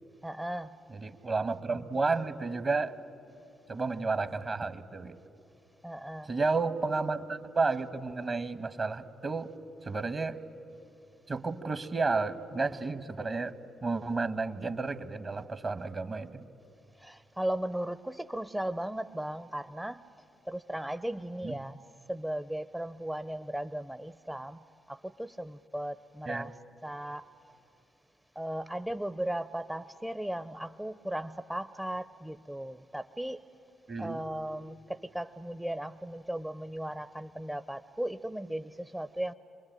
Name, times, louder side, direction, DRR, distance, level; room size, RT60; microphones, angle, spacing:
voice 1, 0.2-0.8 5.8-6.3 17.0-20.0 20.4-21.8 22.1-24.6 24.9-26.5 26.8-27.2 28.4-33.4 34.0-39.3, right 1 dB, 10° right, 12 dB, 0.6 m, -36 dB
voice 2, 0.9-3.0 3.7-5.2 6.2-9.5 9.8-10.4 11.3-13.6 13.8-16.5 21.4-21.6 26.3-26.5 33.9-34.2, right 3 dB, 40° right, 13 dB, 1.3 m, -32 dB
27.0 x 21.5 x 9.0 m, 2.8 s
hypercardioid pair, 40°, 0 cm